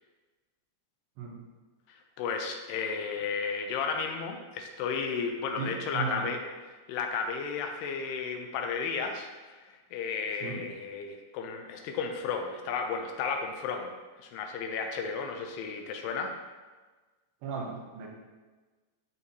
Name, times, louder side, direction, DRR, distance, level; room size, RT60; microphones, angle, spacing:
voice 1, 2.2-6.4 6.9-9.3 9.7-13.9 14.2-16.4, left 5 dB, 80° left, 4 dB, 2.6 m, -33 dB
voice 2, 5.6-6.3 10.4-10.6 17.4-18.1, right 5 dB, 80° right, 0 dB, 3.1 m, -35 dB
12.0 x 4.2 x 2.7 m, 1.3 s
omnidirectional pair, 4.9 m